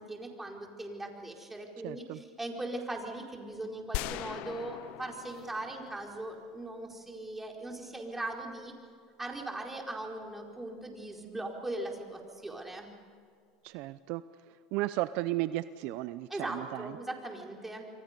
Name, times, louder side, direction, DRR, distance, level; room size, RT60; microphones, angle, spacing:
voice 1, 0.0-8.7 9.2-12.9 16.3-17.9, right 2 dB, 10° right, 1 dB, 4.7 m, -39 dB
voice 2, 1.8-2.2 13.6-14.2 14.5-16.9, right 17 dB, 65° right, 14 dB, 0.6 m, -34 dB
sound 1, 3.9-6.8, left 16 dB, 65° left, 0.7 m, -40 dB
28.0 x 24.0 x 5.3 m, 2.2 s
supercardioid pair, 100°, 2 cm